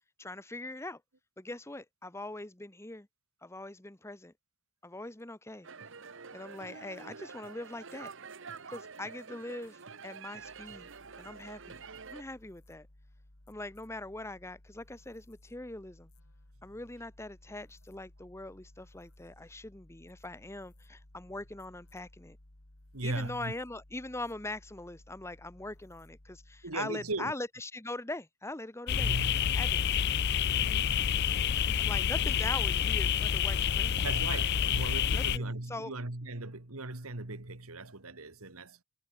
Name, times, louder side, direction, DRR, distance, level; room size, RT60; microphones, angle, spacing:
voice 1, 0.2-1.0 1.4-3.1 3.4-4.3 4.8-5.7 6.3-8.1 8.7-10.9 11.2-11.8 12.1-12.9 13.5-16.1 16.6-22.4 23.0-29.1 29.5-29.7 31.8-34.0 35.1-35.9, left 2 dB, 10° left, 1.1 m, -42 dB
sound 1, 5.6-12.2, right 5 dB, 60° right, 1.4 m, -47 dB
sound 2, 10.4-26.9, left 1 dB, 80° left, 3.1 m, -58 dB
voice 2, 22.9-23.5 26.6-27.3 28.9-29.7 30.5-31.2 33.9-38.8, right 2 dB, 80° right, 2.3 m, -38 dB
sound 3, 28.9-35.4, left 8 dB, 50° left, 0.5 m, -28 dB
head